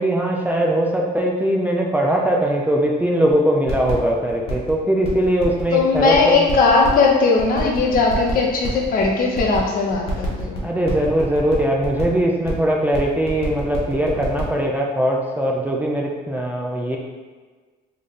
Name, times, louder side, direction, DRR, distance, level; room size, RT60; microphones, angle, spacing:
voice 1, 0.0-6.5 10.6-17.0, right 1 dB, 10° right, -1 dB, 0.4 m, -20 dB
sound 1, 3.3-3.4 3.7-4.7 5.0-7.1 7.4-9.6 9.9-12.2 12.5-12.6 12.8-14.4, left 4 dB, 35° left, 1.0 m, -32 dB
voice 2, 5.7-10.7, left 4 dB, 55° left, 0 dB, 0.7 m, -18 dB
3.3 x 2.2 x 4.0 m, 1.4 s
cardioid pair, 110°, 17 cm